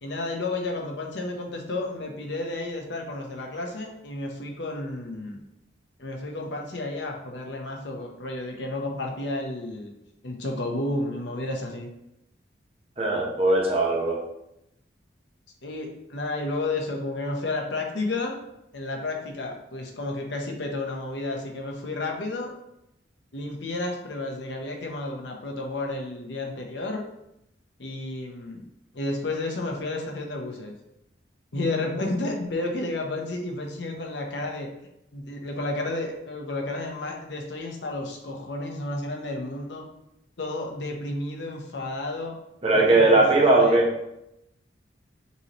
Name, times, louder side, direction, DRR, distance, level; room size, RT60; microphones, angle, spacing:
voice 1, 0.0-5.4 6.0-9.9 10.2-11.9 15.6-18.4 18.7-22.5 23.3-27.0 27.8-28.6 28.9-30.7 31.5-34.7 35.1-39.8 40.4-42.4 42.7-43.8, left 2 dB, 65° left, 1 dB, 0.8 m, -31 dB
voice 2, 13.0-14.2 42.6-43.9, right 2 dB, 30° right, -2 dB, 0.9 m, -19 dB
5.5 x 3.0 x 2.9 m, 0.84 s
head